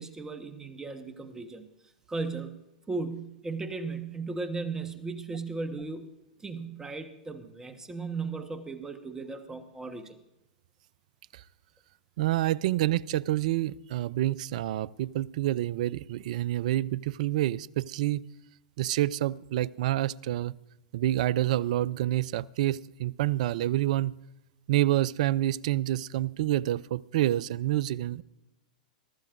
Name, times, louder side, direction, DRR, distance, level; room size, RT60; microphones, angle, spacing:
voice 1, 0.0-1.6 2.1-2.6 2.9-6.1 6.4-10.1, right 3 dB, 10° right, 1.2 m, -36 dB
voice 2, 12.2-18.2 18.8-20.5 20.9-24.2 24.7-28.2, right 14 dB, 65° right, 0.4 m, -28 dB
23.0 x 13.0 x 2.6 m
hypercardioid pair, 110°, 4 cm